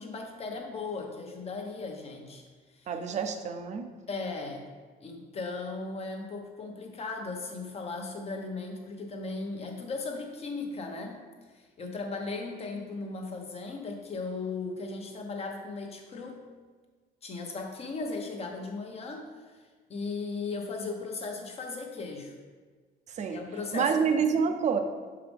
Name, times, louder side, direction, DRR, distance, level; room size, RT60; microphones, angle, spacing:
voice 1, 0.0-2.4 2.7-2.9 4.1-4.7 5.0-11.2 11.5-16.4 17.2-19.6 19.9-22.3 23.3-24.2, left 3 dB, 35° left, 2 dB, 0.9 m, -37 dB
voice 2, 2.9-3.8 23.1-23.4 23.7-24.8, right 6 dB, 45° right, 7 dB, 0.6 m, -27 dB
6.1 x 4.8 x 3.4 m, 1.4 s
cardioid pair, 125°, 17 cm